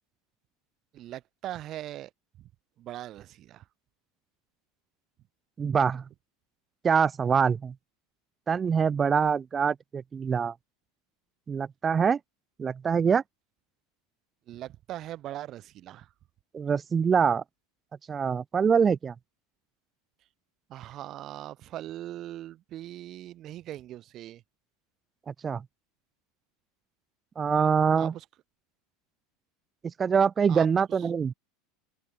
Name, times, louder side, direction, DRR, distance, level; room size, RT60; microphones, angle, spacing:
voice 1, 0.9-2.1 2.4-2.5 2.8-3.6 14.5-16.1 20.7-24.4 28.0-28.2 30.5-30.7 31.0-31.1, right 13 dB, 40° right, 4.0 m, -40 dB
voice 2, 5.6-6.0 6.8-7.7 8.5-10.5 11.5-12.2 12.6-13.2 16.5-17.4 18.1-19.1 25.3-25.6 27.4-28.1 29.8-31.3, right 6 dB, 25° right, 0.7 m, -24 dB
open air
figure-of-eight pair, 80°, 0 cm